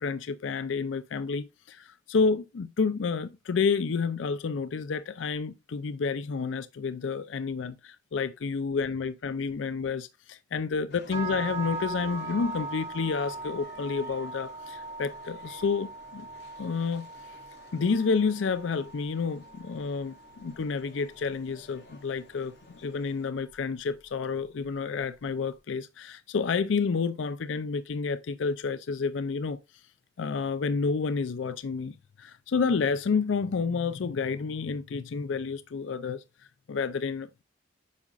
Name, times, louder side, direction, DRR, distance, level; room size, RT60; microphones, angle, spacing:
voice 1, 0.0-16.3 16.6-17.1 17.7-29.6 30.2-36.2 36.7-37.4, left 5 dB, 85° left, 0.5 m, -30 dB
sound 1, 10.9-23.3, left 2 dB, 60° left, 3.3 m, -52 dB
sound 2, 11.1-21.2, right 3 dB, 35° right, 3.5 m, -40 dB
8.4 x 6.0 x 2.4 m
head